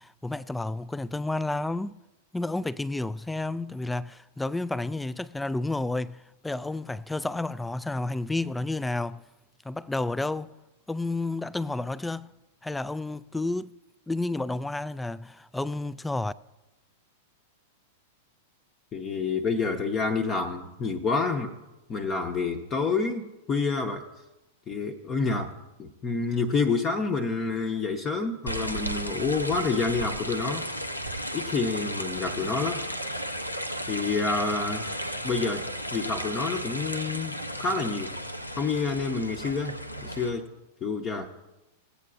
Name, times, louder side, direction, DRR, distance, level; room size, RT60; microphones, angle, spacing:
voice 1, 0.0-2.0 2.3-9.2 9.6-10.5 10.9-12.3 12.6-13.7 14.1-16.3, left 2 dB, 5° left, 0.3 m, -31 dB
voice 2, 18.9-21.6 21.9-24.0 24.7-30.7 31.3-32.8 33.9-34.9 35.2-38.2 38.6-40.5 40.8-41.3, left 4 dB, 25° left, 0.8 m, -28 dB
sound 1, 28.5-40.3, equal, 90° left, 0.7 m, -34 dB
17.5 x 8.3 x 2.5 m
figure-of-eight pair, 95°, 0 cm